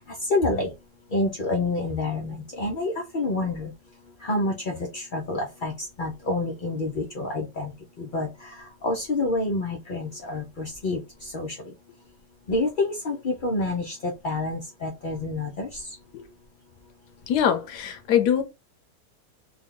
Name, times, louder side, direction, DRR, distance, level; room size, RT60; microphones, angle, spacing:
voice 1, 0.3-0.7 1.1-3.7 4.3-4.5 4.9-5.7 6.0-7.7 8.1-8.3 8.8-11.0 11.3-11.5 12.5-13.9 14.2-15.7, left 2 dB, 55° left, 0.5 m, -27 dB
voice 2, 17.3-18.4, left 9 dB, 85° left, 1.2 m, -23 dB
3.4 x 2.2 x 3.6 m
omnidirectional pair, 1.7 m